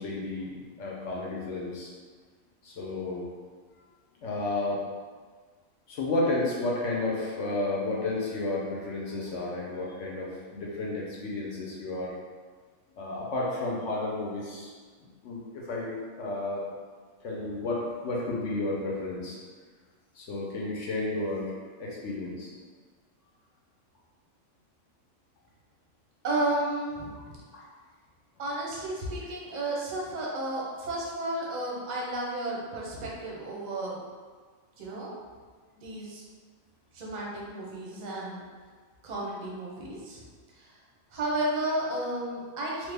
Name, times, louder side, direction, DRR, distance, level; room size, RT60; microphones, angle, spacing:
voice 1, 0.0-1.9 2.6-3.3 4.2-4.8 5.9-12.2 13.0-14.7 15.0-16.6 17.2-19.4 20.1-21.5 21.8-22.5 27.5-27.7, left 2 dB, 65° left, -4 dB, 0.9 m, -32 dB
voice 2, 26.2-27.4 28.4-34.0 34.8-35.2 35.8-36.2 36.9-38.4 39.0-40.2 40.5-40.8 41.1-42.9, right 1 dB, 45° right, -4 dB, 0.6 m, -32 dB
3.0 x 2.1 x 3.3 m, 1.5 s
omnidirectional pair, 1.4 m